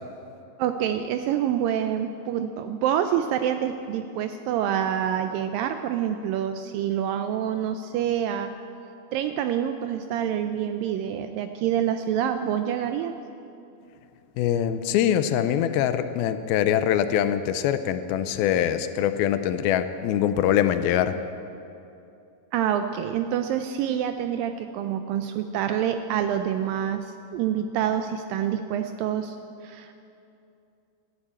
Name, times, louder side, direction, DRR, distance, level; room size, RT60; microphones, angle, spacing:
voice 1, 0.6-8.5 9.1-13.2 22.5-29.4 29.6-30.0, right 9 dB, 80° right, 8 dB, 2.0 m, -27 dB
voice 2, 14.4-21.2, left 10 dB, 80° left, 11 dB, 2.4 m, -23 dB
12.0 x 11.5 x 8.7 m, 2.7 s
omnidirectional pair, 4.5 m